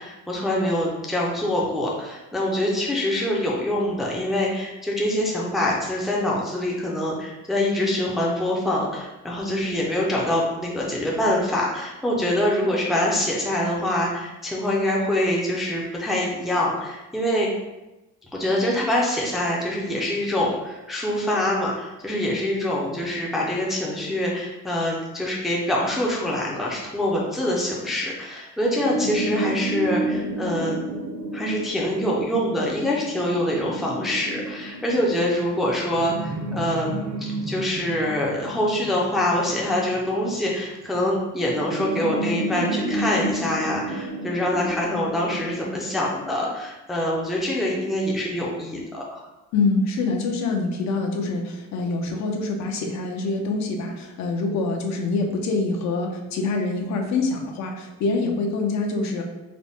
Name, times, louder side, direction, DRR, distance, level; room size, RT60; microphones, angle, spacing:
voice 1, 0.0-17.5 18.3-31.0 31.3-49.2, left 1 dB, ahead, -4 dB, 0.4 m, -25 dB
sound 1, 28.8-40.6 41.4-45.5, right 1 dB, 55° right, 0.6 m, -31 dB
voice 2, 49.5-59.2, left 3 dB, 60° left, 2 dB, 0.5 m, -25 dB
3.9 x 2.0 x 3.4 m, 1.0 s
cardioid pair, 150°, 32 cm